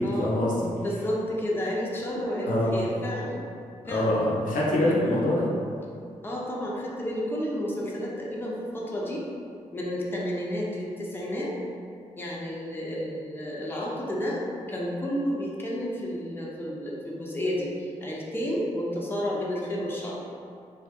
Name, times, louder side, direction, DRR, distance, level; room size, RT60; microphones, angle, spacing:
voice 1, 0.0-0.7 2.5-2.8 3.8-5.5, left 1 dB, 85° left, -5 dB, 0.6 m, -24 dB
voice 2, 0.8-3.5 3.9-4.3 6.2-9.3 9.7-11.5 12.2-14.4 14.7-20.2, equal, 15° left, -5 dB, 0.7 m, -31 dB
2.7 x 2.5 x 3.6 m, 2.4 s
cardioid pair, 70°, 13 cm